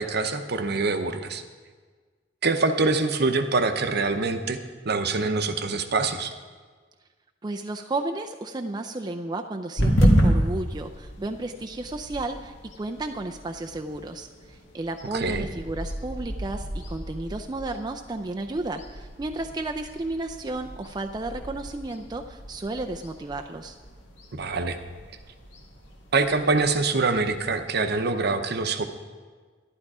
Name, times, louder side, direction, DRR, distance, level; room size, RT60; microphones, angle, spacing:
voice 1, 0.0-1.4 2.4-4.6 4.8-6.3 15.1-15.5 24.3-24.8 26.1-28.8, right 3 dB, 60° right, 8 dB, 0.8 m, -25 dB
voice 2, 7.4-23.8, right 2 dB, 25° right, 4 dB, 0.5 m, -33 dB
sound 1, 9.8-27.6, equal, 80° left, 1.9 m, -30 dB
11.5 x 11.5 x 4.8 m, 1.5 s
head